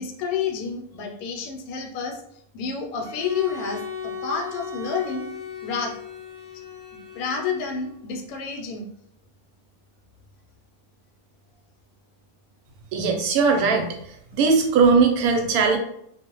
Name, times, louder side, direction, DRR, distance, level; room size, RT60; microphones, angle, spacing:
voice 1, 0.0-2.2 2.5-5.3 5.6-6.0 7.1-8.8, left 5 dB, 75° left, 2 dB, 1.0 m, -29 dB
Bowed string instrument, 3.0-8.0, left 6 dB, 40° left, 0.6 m, -37 dB
voice 2, 12.9-13.9 14.3-15.8, right 4 dB, 75° right, 3 dB, 1.0 m, -19 dB
2.5 x 2.1 x 2.9 m, 0.71 s
omnidirectional pair, 1.6 m